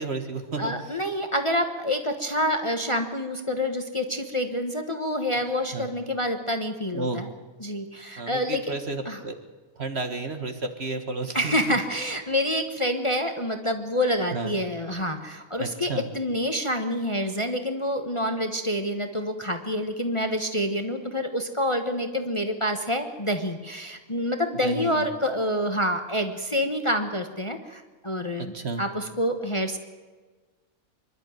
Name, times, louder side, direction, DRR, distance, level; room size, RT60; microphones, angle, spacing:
voice 1, 0.0-0.7 5.7-5.9 6.9-7.2 8.2-9.4 9.8-11.6 14.3-14.5 15.6-16.0 24.6-25.1 28.4-28.8, right 3 dB, 45° right, 7 dB, 1.8 m, -32 dB
voice 2, 0.6-7.3 7.6-8.7 9.0-9.2 11.3-29.8, equal, 20° left, 6 dB, 1.2 m, -27 dB
25.5 x 11.5 x 9.4 m, 1.4 s
omnidirectional pair, 1.6 m